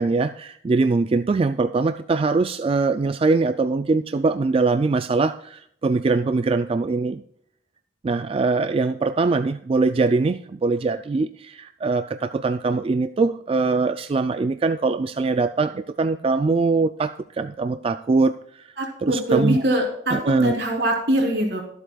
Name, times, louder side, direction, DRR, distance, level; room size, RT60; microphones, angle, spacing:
voice 1, 0.0-7.2 8.0-18.7 19.0-19.6 20.1-20.6, right 3 dB, 30° right, 10 dB, 0.3 m, -22 dB
voice 2, 18.8-21.6, right 1 dB, 70° right, 0 dB, 3.5 m, -23 dB
23.5 x 8.0 x 2.3 m, 0.71 s
head